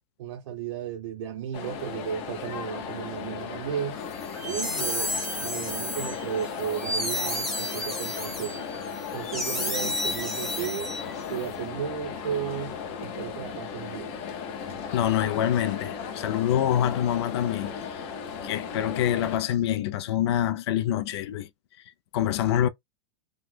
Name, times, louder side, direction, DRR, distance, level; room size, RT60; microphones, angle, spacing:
voice 1, 0.2-4.0 4.4-8.6 9.1-10.9 11.3-14.1, right 9 dB, 80° right, 0.7 m, -34 dB
sound 1, 1.5-19.4, left 6 dB, 35° left, 0.7 m, -36 dB
sound 2, 4.1-11.4, left 1 dB, ahead, 0.9 m, -32 dB
voice 2, 14.9-17.7 18.4-21.5 22.1-22.7, left 11 dB, 65° left, 0.4 m, -25 dB
3.0 x 2.0 x 3.3 m
supercardioid pair, 175°, 15 cm